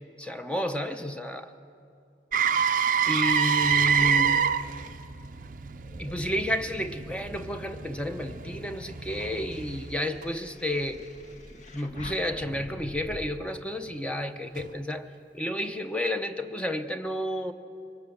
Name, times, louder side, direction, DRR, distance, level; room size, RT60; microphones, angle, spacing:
voice 1, 0.2-1.5 3.1-4.5 6.0-11.0 11.7-15.0 15.3-17.5, left 1 dB, 5° left, 7 dB, 0.7 m, -31 dB
Motor vehicle (road), 2.3-10.2 14.6-14.7, right 7 dB, 50° right, 0.5 m, -27 dB
sound 1, 2.9-7.1 7.6-13.3, left 1 dB, 45° left, 1.4 m, -47 dB
23.5 x 18.0 x 7.9 m, 2.5 s
head